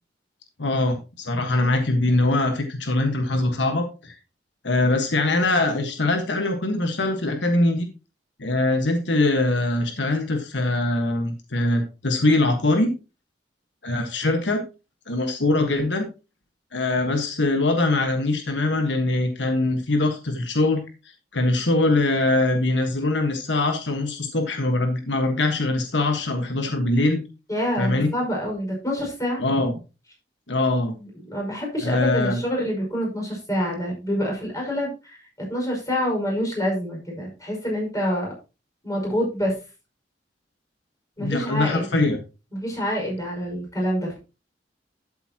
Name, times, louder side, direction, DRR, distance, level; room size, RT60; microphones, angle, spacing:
voice 1, 0.6-4.2 4.6-7.9 8.4-12.9 13.8-14.6 15.1-16.1 16.7-20.8 21.3-27.2 27.8-28.1 29.4-29.7 30.5-30.9 31.8-32.4 41.2-42.2, left 2 dB, 85° left, 5 dB, 1.5 m, -22 dB
voice 2, 27.5-29.4 31.0-38.3 38.8-39.6 41.2-41.9 42.5-44.2, equal, 20° left, -1 dB, 5.5 m, -27 dB
12.0 x 8.1 x 2.9 m, 0.29 s
head